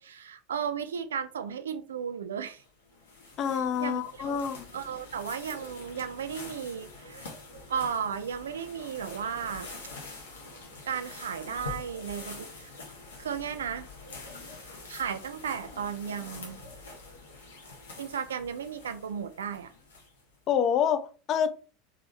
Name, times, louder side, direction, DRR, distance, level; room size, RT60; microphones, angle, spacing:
voice 1, 0.0-2.6 3.8-4.4 4.7-7.3 7.7-9.7 10.9-12.7 13.2-13.9 14.9-16.6 18.0-19.7, right 7 dB, 70° right, 0.3 m, -34 dB
sound 1, 2.6-20.4, left 3 dB, 70° left, 0.8 m, -46 dB
voice 2, 3.4-4.7 20.5-21.5, left 8 dB, 40° left, 0.4 m, -27 dB
3.5 x 2.5 x 3.0 m
figure-of-eight pair, 75°, 0 cm